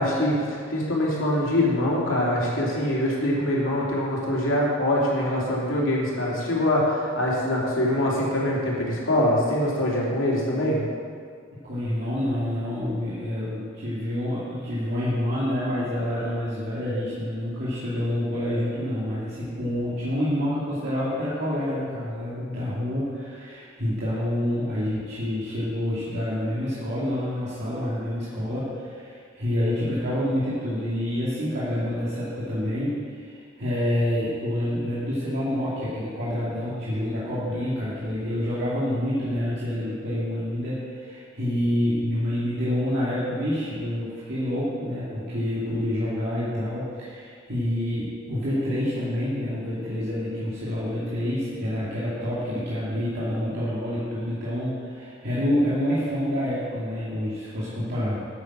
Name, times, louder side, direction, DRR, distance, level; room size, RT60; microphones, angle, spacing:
voice 1, 0.0-10.8, left 1 dB, 85° left, -4 dB, 2.7 m, -24 dB
voice 2, 11.6-58.2, left 1 dB, 60° right, -9 dB, 2.5 m, -27 dB
9.4 x 8.7 x 6.1 m, 2.1 s
head